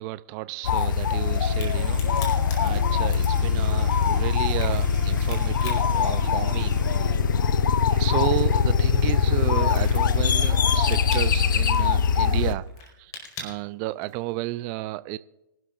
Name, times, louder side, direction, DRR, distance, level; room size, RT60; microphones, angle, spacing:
voice 1, 0.0-2.0 2.6-6.7 7.9-12.6 13.4-15.2, right 18 dB, 30° right, 0.5 m, -32 dB
sound 1, 0.6-12.5, left 6 dB, 65° left, 0.8 m, -22 dB
sound 2, 1.1-11.5, right 3 dB, 10° right, 6.7 m, -44 dB
Crack, 1.5-7.0 7.3-14.3, left 3 dB, 30° left, 4.8 m, -43 dB
26.0 x 12.0 x 2.5 m
figure-of-eight pair, 120°, 12 cm